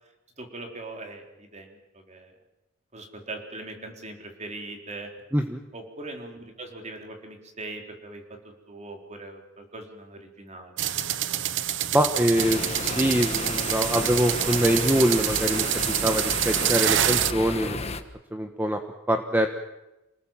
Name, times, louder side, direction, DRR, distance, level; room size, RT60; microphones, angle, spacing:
voice 1, 0.4-2.3 2.9-5.1 5.7-10.8, right 2 dB, 35° right, 2 dB, 4.4 m, -41 dB
sound 1, 10.8-17.3, right 11 dB, 65° right, 0.9 m, -26 dB
voice 2, 11.9-15.7 16.0-17.8 18.3-18.8 19.1-19.5, equal, 10° right, 5 dB, 1.3 m, -24 dB
sound 2, 12.4-18.0, left 3 dB, 30° left, 1.4 m, -33 dB
27.5 x 20.0 x 7.5 m, 0.96 s
head